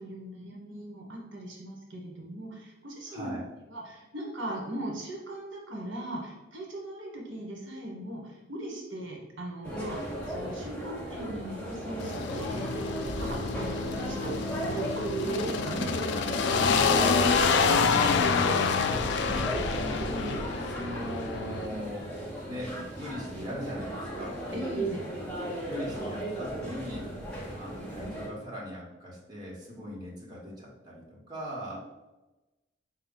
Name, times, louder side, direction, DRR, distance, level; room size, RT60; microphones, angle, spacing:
voice 1, 0.0-3.4 3.7-15.9 24.5-25.0, right 1 dB, 80° right, -1 dB, 1.1 m, -40 dB
voice 2, 3.1-3.4 16.9-18.8 19.3-22.1 22.5-24.4 25.6-27.1 27.5-31.8, equal, 20° right, -5 dB, 1.2 m, -40 dB
sound 1, 9.6-28.3, right 1 dB, 5° left, 1.0 m, -35 dB
sound 2, 12.0-21.7, left 5 dB, 65° left, 0.3 m, -27 dB
4.7 x 2.3 x 3.8 m, 1.0 s
head